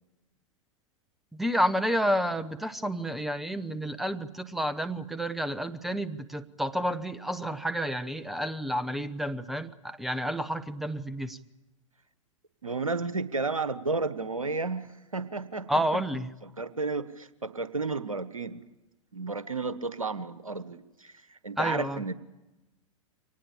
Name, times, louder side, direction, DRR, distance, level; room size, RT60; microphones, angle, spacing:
voice 1, 1.3-11.4 15.7-16.3 21.6-22.0, equal, ahead, 14 dB, 1.0 m, -30 dB
voice 2, 12.6-16.0 16.4-18.6 19.1-22.1, right 3 dB, 90° right, 14 dB, 1.2 m, -32 dB
24.5 x 19.0 x 8.7 m, 1.0 s
figure-of-eight pair, 100°, 17 cm